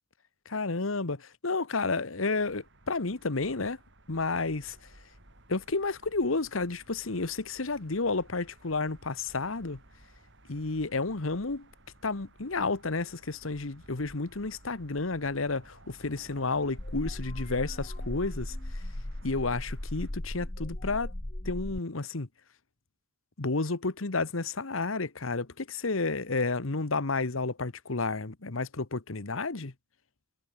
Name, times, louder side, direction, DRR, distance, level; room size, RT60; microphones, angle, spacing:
voice 1, 0.5-3.8 4.1-4.8 5.5-9.8 10.5-11.7 12.0-18.8 19.2-21.1 21.4-22.3 23.4-29.7, left 3 dB, 80° left, 1.3 m, -31 dB
sound 1, 2.4-20.1, right 1 dB, 60° right, 7.6 m, -56 dB
sound 2, 16.8-21.8, left 1 dB, 35° left, 1.4 m, -37 dB
head